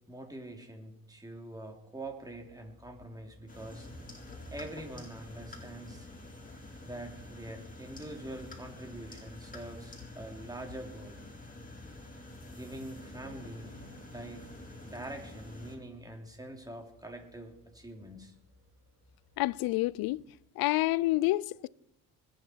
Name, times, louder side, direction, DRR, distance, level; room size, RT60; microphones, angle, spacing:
voice 1, 0.1-3.9 4.5-6.1 6.8-11.2 12.5-13.7 14.1-14.5 14.8-18.3, right 1 dB, 10° right, 3.2 m, -44 dB
sound 1, 1.9-20.3, left 1 dB, 65° right, 2.8 m, -62 dB
sound 2, 3.5-15.8, left 2 dB, 20° left, 3.9 m, -48 dB
voice 2, 19.4-20.2 20.6-21.7, left 18 dB, 75° left, 0.5 m, -28 dB
20.5 x 9.5 x 4.6 m
cardioid pair, 85°, 37 cm